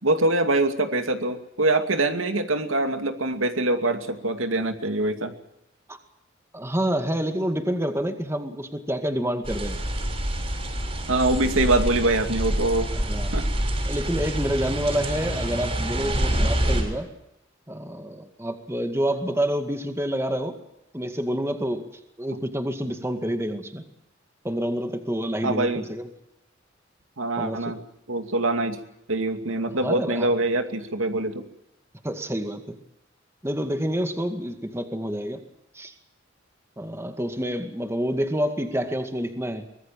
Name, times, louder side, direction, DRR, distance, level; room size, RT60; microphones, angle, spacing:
voice 1, 0.0-5.3 11.1-12.9 13.3-13.5 25.4-25.9 27.2-27.8 28.1-28.8 29.1-31.4, right 2 dB, 90° right, 6 dB, 2.4 m, -24 dB
voice 2, 6.5-9.8 12.9-13.4 13.9-17.1 17.7-20.6 20.9-21.9 22.2-23.8 24.4-26.1 27.4-27.8 29.8-30.3 32.0-32.8 33.4-35.4 35.7-35.9 36.8-39.6, equal, 15° right, 6 dB, 2.1 m, -28 dB
sound 1, 9.4-16.8, right 1 dB, 30° right, 6.5 m, -26 dB
24.0 x 20.5 x 7.6 m, 0.85 s
head